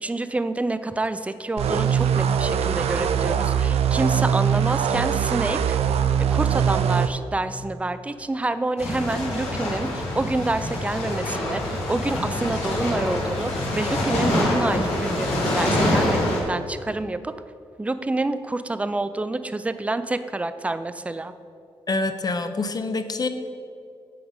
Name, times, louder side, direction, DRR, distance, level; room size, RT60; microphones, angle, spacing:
voice 1, 0.0-6.0 6.3-17.3 17.8-21.3, right 2 dB, 15° right, 12 dB, 0.4 m, -28 dB
sound 1, 1.6-7.1, right 8 dB, 80° right, 0.4 m, -22 dB
sound 2, 8.8-16.4, left 1 dB, 90° left, 1.6 m, -25 dB
voice 2, 21.9-23.3, left 3 dB, 40° left, 8 dB, 0.6 m, -26 dB
8.6 x 3.9 x 5.2 m, 2.5 s
cardioid pair, 60°, 10 cm